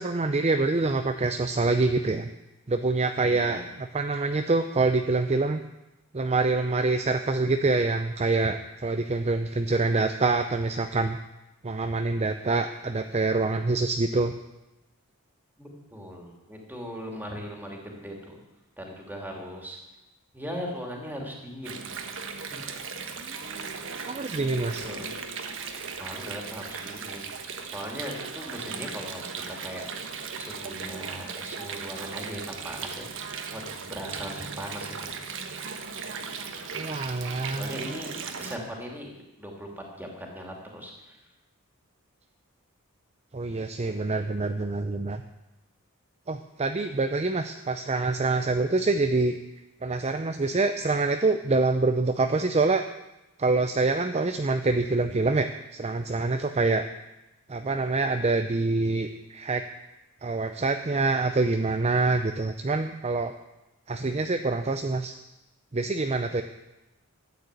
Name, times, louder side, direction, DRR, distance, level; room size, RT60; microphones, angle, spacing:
voice 1, 0.0-2.3 2.7-3.6 3.9-5.6 6.1-11.2 11.6-14.3 23.2-23.7 24.1-24.8 36.7-37.8 43.3-45.2 46.3-49.4 49.8-52.8 53.4-56.9 57.5-59.6 60.2-63.3 63.9-65.1 65.7-66.4, right 3 dB, 30° right, 7 dB, 0.6 m, -26 dB
voice 2, 3.2-3.6 15.6-18.4 18.8-19.8 20.3-21.8 22.3-22.6 23.9-24.0 24.8-25.1 25.9-27.4 27.7-35.1 37.6-38.1 38.4-39.1 39.4-41.2, equal, 10° right, 0 dB, 2.8 m, -39 dB
Water, 21.6-38.6, right 5 dB, 60° right, 1.3 m, -37 dB
13.5 x 9.5 x 8.3 m, 0.97 s
head